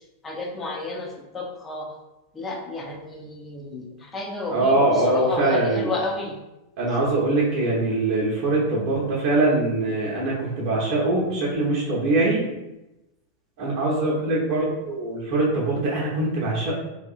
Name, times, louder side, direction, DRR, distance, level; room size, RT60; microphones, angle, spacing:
voice 1, 0.2-1.9 2.3-6.4, left 2 dB, 15° left, 0 dB, 0.5 m, -32 dB
voice 2, 4.5-5.9 6.8-12.4 13.6-16.8, right 2 dB, 45° right, -5 dB, 0.6 m, -22 dB
2.7 x 2.3 x 2.4 m, 0.96 s
figure-of-eight pair, 90°, 0 cm